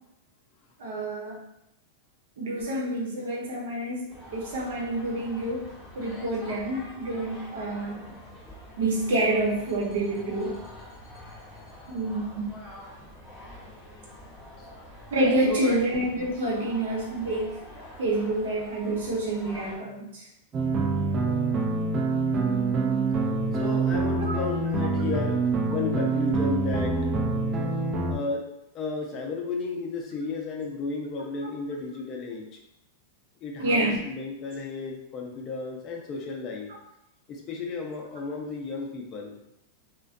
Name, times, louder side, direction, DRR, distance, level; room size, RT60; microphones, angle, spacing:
voice 1, 0.8-1.4 2.4-5.7 5.9-8.1 8.8-10.6 11.9-12.5 15.1-17.6 18.0-20.3 24.3-24.4 33.6-34.0, right 1 dB, 80° right, -4 dB, 0.9 m, -28 dB
sound 1, 4.1-19.8, left 1 dB, 10° right, 0.8 m, -46 dB
voice 2, 15.5-15.8 23.5-27.1 28.1-28.4 28.7-32.6 33.4-36.7 37.3-39.4, left 3 dB, 35° left, 0 dB, 0.5 m, -33 dB
sound 2, 20.5-28.2, right 3 dB, 30° right, 0.4 m, -26 dB
2.4 x 2.2 x 2.5 m, 0.85 s
hypercardioid pair, 125°, 0 cm